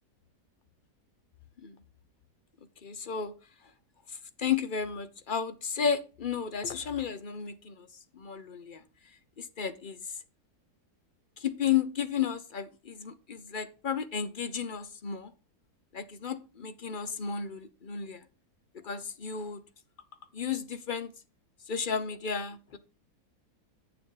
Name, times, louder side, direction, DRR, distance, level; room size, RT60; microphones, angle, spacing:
voice 1, 2.8-3.4 3.6-3.7 4.1-10.2 11.4-15.3 15.9-18.2 18.8-19.6 20.3-21.1 21.7-22.8, left 7 dB, 45° left, 0.7 m, -33 dB
9.5 x 7.2 x 3.8 m
omnidirectional pair, 1.7 m